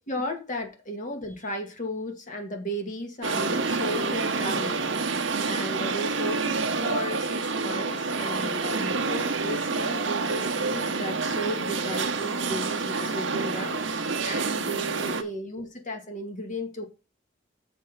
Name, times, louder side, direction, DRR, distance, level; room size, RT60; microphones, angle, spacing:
voice 1, 0.1-16.8, equal, 45° left, 4 dB, 2.1 m, -35 dB
sound 1, 3.2-15.2, right 4 dB, 85° right, 1.1 m, -28 dB
6.8 x 4.5 x 6.7 m, 0.31 s
head